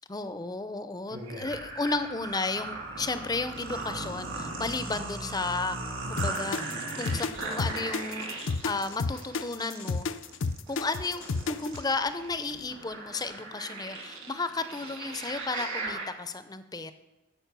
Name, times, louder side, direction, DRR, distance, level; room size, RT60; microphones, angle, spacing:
voice 1, 0.1-5.8 6.1-6.6 6.9-10.1 10.7-16.9, left 3 dB, 20° left, 11 dB, 0.5 m, -33 dB
sound 1, 1.1-16.1, right 2 dB, 60° right, 2.5 m, -38 dB
sound 2, 6.2-11.8, left 4 dB, 65° left, 0.5 m, -31 dB
13.5 x 5.4 x 6.8 m, 1.1 s
head